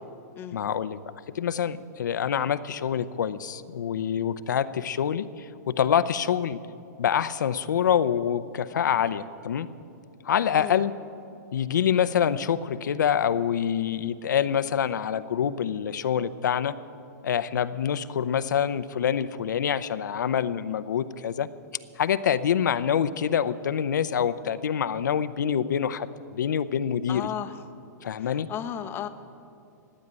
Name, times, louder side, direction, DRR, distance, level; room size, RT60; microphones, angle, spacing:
voice 1, 0.5-1.0 1.3-6.6 7.0-9.7 10.2-10.9 11.5-16.7 17.2-21.5 22.0-27.2 28.0-28.5, left 8 dB, 85° left, 14 dB, 0.7 m, -26 dB
voice 2, 27.1-27.6 28.2-29.1, left 10 dB, 25° left, 9 dB, 0.8 m, -34 dB
15.0 x 9.6 x 8.9 m, 2.6 s
hypercardioid pair, 140°, 10 cm